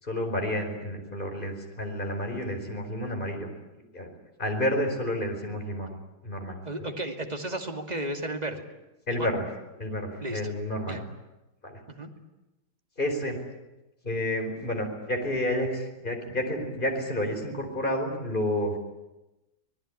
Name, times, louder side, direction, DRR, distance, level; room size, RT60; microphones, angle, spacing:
voice 1, 0.0-3.5 3.9-4.1 4.4-5.9 6.2-6.9 9.1-9.4 9.8-11.0 11.6-11.8 13.0-13.4 14.0-18.8, left 1 dB, 25° left, 3 dB, 4.9 m, -30 dB
voice 2, 6.6-8.6 9.1-9.3 10.2-10.4 10.9-11.0 11.9-12.1, right 1 dB, 20° right, 4 dB, 2.5 m, -33 dB
25.5 x 19.5 x 10.0 m, 1.0 s
omnidirectional pair, 2.1 m